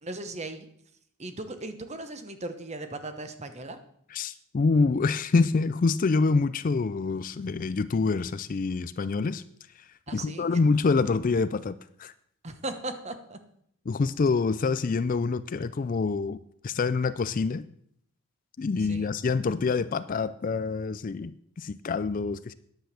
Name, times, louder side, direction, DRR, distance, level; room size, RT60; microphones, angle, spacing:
voice 1, 0.0-0.7 1.2-3.8 10.1-10.5 12.4-13.4 18.8-19.1, right 2 dB, 30° right, 8 dB, 1.0 m, -37 dB
voice 2, 4.1-9.4 10.1-12.1 13.9-16.4 16.6-17.7 18.6-22.5, left 4 dB, 35° left, 15 dB, 0.4 m, -26 dB
10.0 x 8.0 x 6.8 m, 0.69 s
head